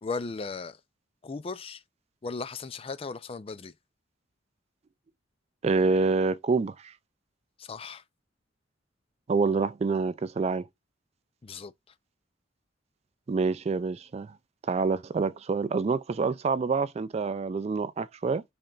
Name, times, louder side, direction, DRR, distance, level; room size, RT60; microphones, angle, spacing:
voice 1, 0.0-0.8 1.2-1.8 2.2-3.7 7.6-8.0 11.4-11.7, left 4 dB, 30° left, 0.4 m, -36 dB
voice 2, 5.6-6.9 9.3-10.7 13.3-14.4 14.7-18.4, right 4 dB, 35° right, 0.3 m, -27 dB
4.3 x 3.3 x 3.7 m
head